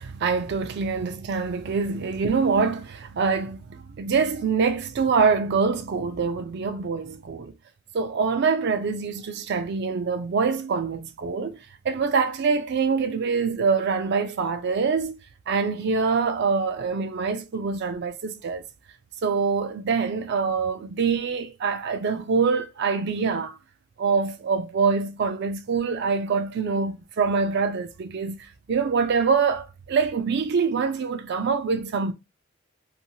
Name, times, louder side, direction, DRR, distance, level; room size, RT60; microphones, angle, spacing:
voice 1, 0.0-7.5 7.9-11.6 11.8-15.1 15.5-18.6 19.2-23.6 24.0-32.1, right 5 dB, 55° right, 0.4 m, -25 dB
2.7 x 2.2 x 2.7 m
head